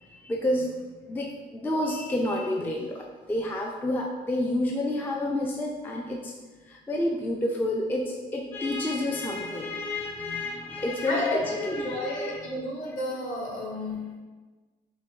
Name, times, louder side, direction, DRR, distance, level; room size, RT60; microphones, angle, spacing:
voice 1, 0.1-6.3 6.7-12.4, left 1 dB, 10° left, -1 dB, 0.3 m, -29 dB
voice 2, 11.1-14.2, left 1 dB, 50° left, -3 dB, 1.3 m, -32 dB
5.6 x 2.1 x 3.0 m, 1.3 s
cardioid pair, 110°, 17 cm